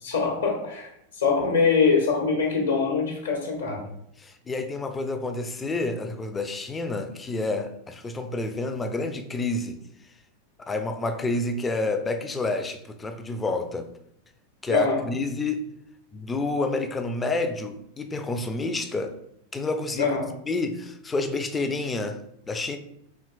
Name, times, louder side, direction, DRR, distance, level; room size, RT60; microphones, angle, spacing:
voice 1, 0.0-3.8 14.7-15.0 20.0-20.3, left 5 dB, 70° left, 0 dB, 0.9 m, -23 dB
voice 2, 4.2-9.8 10.7-13.9 14.6-15.6 16.1-19.2 19.5-20.1 20.5-22.8, left 2 dB, 15° left, 7 dB, 0.3 m, -29 dB
4.3 x 2.9 x 2.3 m, 0.74 s
figure-of-eight pair, 90°, 0 cm